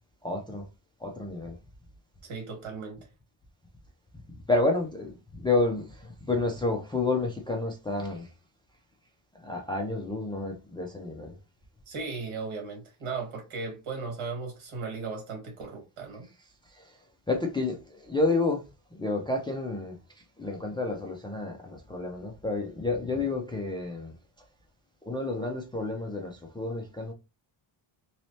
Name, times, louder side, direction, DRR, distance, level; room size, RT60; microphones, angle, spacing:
voice 1, 0.2-0.7 1.0-1.6 4.3-8.3 9.4-11.4 16.7-17.0 17.3-18.6 19.0-20.0 20.4-24.1 25.1-27.1, left 2 dB, 10° left, 0.3 m, -30 dB
voice 2, 2.2-3.0 11.9-16.3, right 4 dB, 80° right, 2.0 m, -36 dB
3.1 x 3.1 x 2.7 m
cardioid pair, 165°, 49 cm